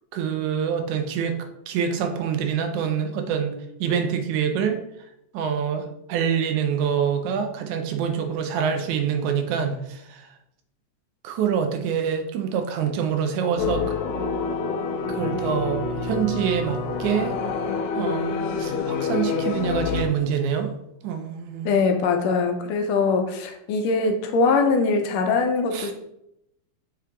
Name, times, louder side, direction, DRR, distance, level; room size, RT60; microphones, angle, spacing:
voice 1, 0.1-1.4 1.7-4.8 5.3-10.3 11.2-13.9 15.1-17.3 17.9-20.7 21.0-21.7 25.7-25.9, right 7 dB, 85° right, 5 dB, 2.1 m, -26 dB
sound 1, 13.6-20.0, left 4 dB, 90° left, 2.2 m, -27 dB
voice 2, 21.7-25.9, left 4 dB, 75° left, 5 dB, 1.7 m, -22 dB
7.3 x 3.7 x 3.5 m, 0.80 s
omnidirectional pair, 3.3 m